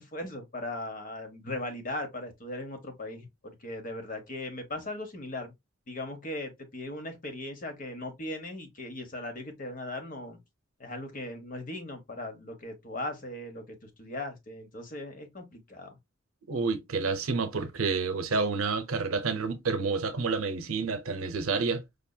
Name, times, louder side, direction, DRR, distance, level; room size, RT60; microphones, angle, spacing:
voice 1, 0.0-5.5 5.9-10.4 10.8-16.0, left 1 dB, 40° left, 1.0 m, -38 dB
voice 2, 16.5-21.8, right 4 dB, 85° right, 0.7 m, -29 dB
5.1 x 2.7 x 2.3 m
head